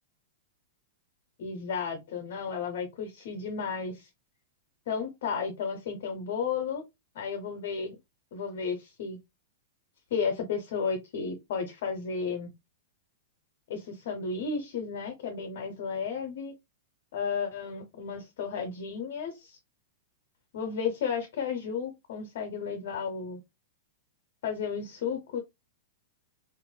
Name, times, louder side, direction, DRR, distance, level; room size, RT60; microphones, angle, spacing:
voice 1, 1.4-4.1 4.9-6.8 7.1-8.0 8.3-9.2 10.1-12.5 13.7-16.5 17.1-19.6 20.5-23.4 24.4-25.4, left 6 dB, 65° left, 0.7 m, -33 dB
3.1 x 2.5 x 2.2 m
hypercardioid pair, 130°, 0 cm